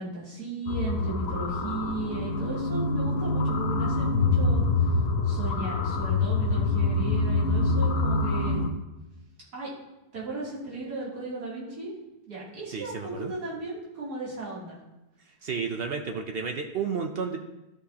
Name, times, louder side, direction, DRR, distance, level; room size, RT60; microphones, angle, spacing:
voice 1, 0.0-4.6 5.2-8.6 9.5-9.7 10.1-11.9 12.3-14.8, right 3 dB, 80° right, -8 dB, 3.5 m, -36 dB
sound 1, 0.7-8.7, left 3 dB, 60° left, 1.2 m, -25 dB
voice 2, 12.7-13.3 15.4-17.4, right 5 dB, 60° right, 4 dB, 0.6 m, -31 dB
12.5 x 6.2 x 2.8 m, 0.98 s
omnidirectional pair, 1.7 m